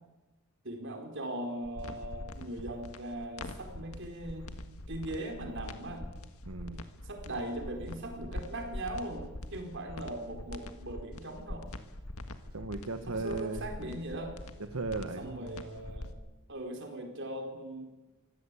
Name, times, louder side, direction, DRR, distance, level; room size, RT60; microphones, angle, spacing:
voice 1, 0.6-4.5 4.9-6.1 7.0-11.7 13.1-14.3 15.2-16.1 16.5-17.9, right 1 dB, 55° right, 4 dB, 4.5 m, -39 dB
sound 1, 1.6-16.1, left 1 dB, 80° left, 1.7 m, -43 dB
voice 2, 6.4-6.8 12.5-13.6 14.6-15.5, right 3 dB, 70° right, 7 dB, 1.3 m, -36 dB
24.5 x 16.0 x 8.4 m, 1.1 s
head